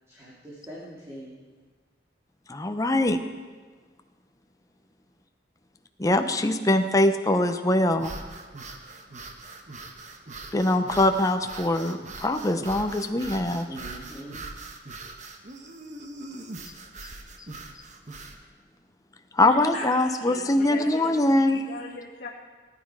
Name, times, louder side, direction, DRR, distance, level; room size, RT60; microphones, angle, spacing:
voice 1, 0.1-1.5 13.7-14.4, right 1 dB, 15° right, -7 dB, 2.4 m, -42 dB
voice 2, 2.5-3.2 6.0-8.1 10.5-13.7 19.3-21.7, left 1 dB, 20° left, 7 dB, 0.7 m, -23 dB
sound 1, 7.9-18.4, right 3 dB, 40° right, 1.1 m, -41 dB
voice 3, 19.5-22.3, left 3 dB, 55° left, -8 dB, 2.1 m, -40 dB
18.0 x 9.7 x 4.8 m, 1.4 s
head